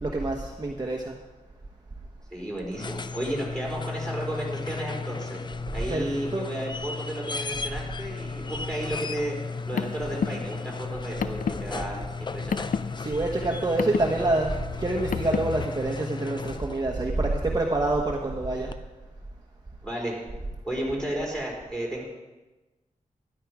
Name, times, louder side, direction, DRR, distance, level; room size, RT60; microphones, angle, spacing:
voice 1, 0.0-1.1 5.9-6.1 6.3-6.4 13.0-14.5 14.8-18.7, right 2 dB, 30° right, -1 dB, 1.2 m, -26 dB
voice 2, 2.3-5.4 5.7-9.4 9.7-12.6 19.8-20.2 20.6-22.0, right 1 dB, 5° left, -3 dB, 4.2 m, -33 dB
sound 1, 2.6-17.0 18.7-18.8, left 4 dB, 35° left, 0.5 m, -35 dB
Car, 9.4-15.7, left 6 dB, 80° left, 0.5 m, -32 dB
12.5 x 11.0 x 4.9 m, 1.1 s
wide cardioid pair, 120°, 14 cm